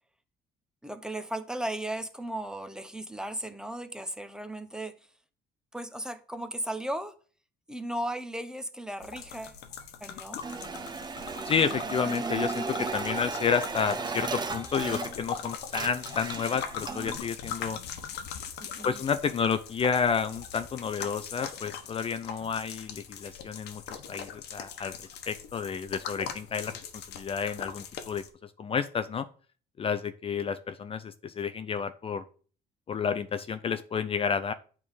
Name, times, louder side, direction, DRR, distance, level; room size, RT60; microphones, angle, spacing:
voice 1, 0.8-4.9 5.7-7.2 7.7-9.6 10.0-10.4 18.6-19.0, right 1 dB, 5° right, 0.8 m, -36 dB
sound 1, 9.0-28.3, left 8 dB, 80° left, 1.2 m, -41 dB
sound 2, 10.4-15.4 15.6-17.2, right 4 dB, 25° right, 0.9 m, -35 dB
voice 2, 11.4-17.8 18.8-25.0 25.3-29.3 29.8-32.2 32.9-34.5, left 6 dB, 35° left, 0.5 m, -30 dB
8.5 x 3.6 x 6.3 m
cardioid pair, 110°, 17 cm